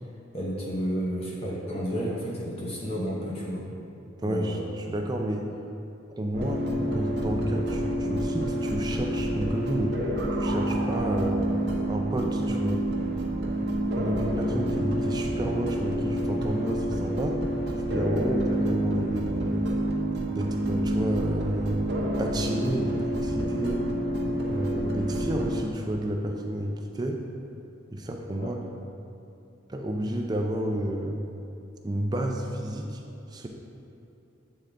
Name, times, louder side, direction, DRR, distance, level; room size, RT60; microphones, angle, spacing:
voice 1, 0.3-3.7 4.2-4.6 28.4-28.5, equal, 30° left, -5 dB, 0.7 m, -31 dB
voice 2, 4.2-5.5 6.1-10.0 10.3-11.5 11.9-12.9 14.0-19.6 20.3-23.9 24.5-27.2 27.9-28.6 29.7-31.2 31.8-33.0 33.3-33.5, right 1 dB, 20° right, 2 dB, 0.4 m, -31 dB
sound 1, 6.3-25.6, right 1 dB, 55° right, 0.8 m, -28 dB
8.3 x 3.7 x 3.4 m, 2.8 s
head